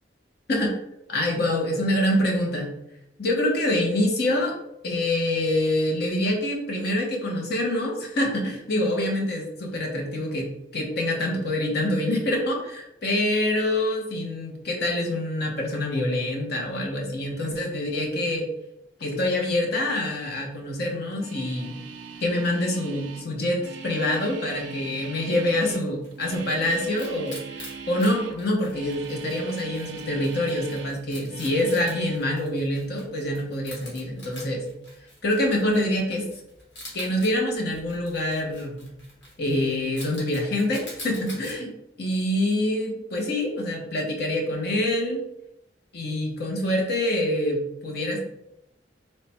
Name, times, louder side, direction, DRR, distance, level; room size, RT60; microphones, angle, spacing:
voice 1, 1.1-2.7 3.2-4.5 4.8-18.5 19.0-21.8 22.2-34.7 35.2-36.3 36.9-38.9 39.4-41.7 42.0-45.2 45.9-48.2, left 1 dB, 60° left, 0 dB, 0.9 m, -26 dB
sound 1, 21.1-28.4 28.7-31.0 31.3-32.2, right 5 dB, 70° right, 0.4 m, -41 dB
Wild animals, 25.6-41.6, left 1 dB, 85° left, 1.4 m, -46 dB
3.2 x 2.2 x 4.1 m, 0.80 s
head